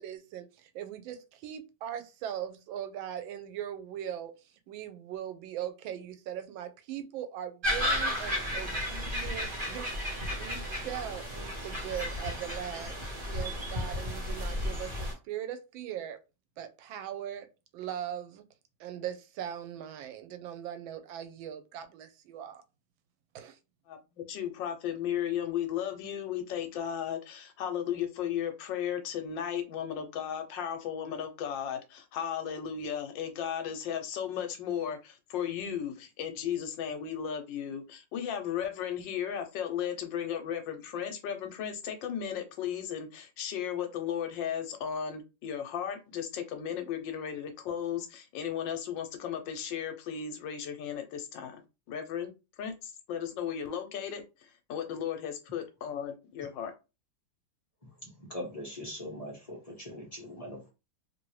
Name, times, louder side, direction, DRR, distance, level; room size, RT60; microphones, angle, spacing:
voice 1, 0.0-4.3 4.7-9.9 10.3-16.2 16.6-17.5 17.7-18.4 18.8-22.6 23.3-23.6, right 10 dB, 85° right, 1.3 m, -40 dB
sound 1, 7.6-15.1, left 1 dB, 30° right, 1.5 m, -33 dB
voice 2, 24.3-51.6 51.9-52.3 52.6-54.2 54.7-56.7, left 9 dB, 80° left, 1.3 m, -35 dB
voice 3, 58.0-60.7, left 1 dB, 30° left, 0.7 m, -41 dB
3.1 x 2.7 x 3.1 m
omnidirectional pair, 2.1 m